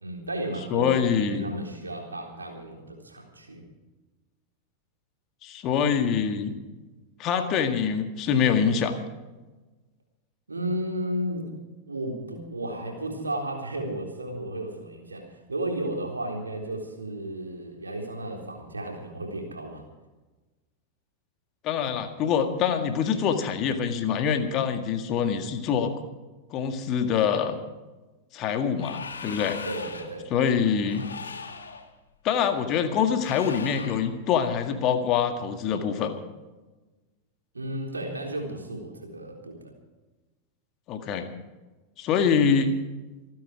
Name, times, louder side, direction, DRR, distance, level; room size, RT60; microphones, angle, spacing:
voice 1, 0.0-3.6 10.5-11.4 11.9-19.8 29.6-30.7 37.5-39.7, right 1 dB, 80° right, 1 dB, 3.7 m, -34 dB
voice 2, 0.7-1.5 5.4-6.5 7.2-8.9 21.6-25.9 26.5-27.6 28.3-29.6 30.3-31.0 32.2-36.1 40.9-41.3 42.0-42.7, left 7 dB, 35° left, 7 dB, 1.8 m, -25 dB
sound 1, 28.7-30.2 30.8-31.9 33.2-34.1, left 5 dB, 70° left, 1.8 m, -39 dB
26.5 x 9.6 x 5.0 m, 1.2 s
figure-of-eight pair, 90°, 0 cm